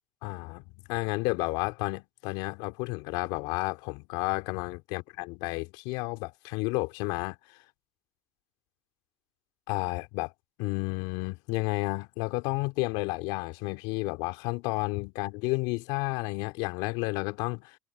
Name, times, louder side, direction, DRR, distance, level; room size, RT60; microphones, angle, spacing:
voice 1, 0.2-0.6 0.9-7.4 9.7-10.3 10.6-17.8, left 25 dB, 70° left, 2.7 m, -31 dB
hypercardioid pair, 65°, 8 cm